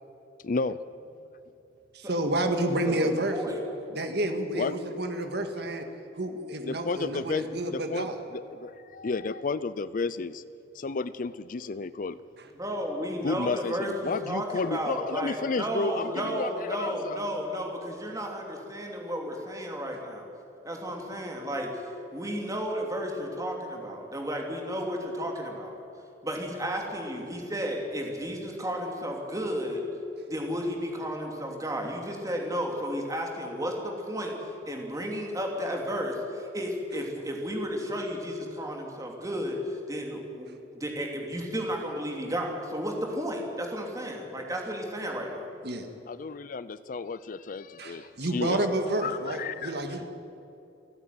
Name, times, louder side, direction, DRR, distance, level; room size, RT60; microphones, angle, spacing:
voice 1, 0.4-0.8 4.5-4.7 6.7-8.1 8.3-10.4 10.7-12.2 13.2-17.2 46.1-48.6 49.0-49.7, left 4 dB, 45° left, 16 dB, 0.5 m, -32 dB
voice 2, 1.9-3.4 3.9-5.9 6.2-8.2 45.6-45.9 47.8-50.1, right 1 dB, 60° right, 6 dB, 1.8 m, -29 dB
voice 3, 2.9-3.6 12.5-20.3 20.6-21.7 22.1-25.8 26.2-29.9 30.3-45.5, equal, 20° right, 1 dB, 3.0 m, -33 dB
29.0 x 9.7 x 9.4 m, 2.8 s
head